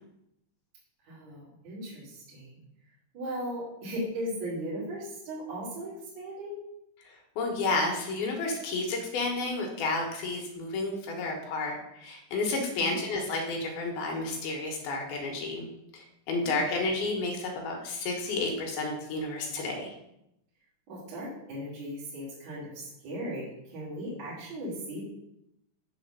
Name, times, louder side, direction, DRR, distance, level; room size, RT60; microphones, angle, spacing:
voice 1, 1.0-2.5 3.1-6.6 12.5-13.0 16.4-16.6 20.9-25.0, equal, 40° right, -8 dB, 3.0 m, -37 dB
voice 2, 7.0-15.7 15.9-19.9, left 3 dB, 75° left, 1 dB, 2.4 m, -31 dB
7.7 x 4.1 x 6.5 m, 0.82 s
omnidirectional pair, 5.8 m